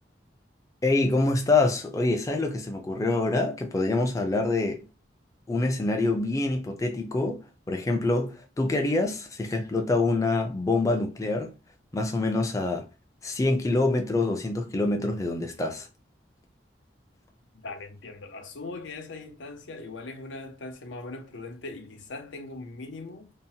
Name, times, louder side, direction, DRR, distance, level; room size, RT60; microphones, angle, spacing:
voice 1, 0.8-4.8 5.5-11.5 11.9-12.9 13.2-15.9, left 2 dB, 20° left, 0.4 m, -26 dB
voice 2, 17.5-23.3, left 3 dB, 90° left, 0.6 m, -40 dB
2.7 x 2.1 x 2.7 m
head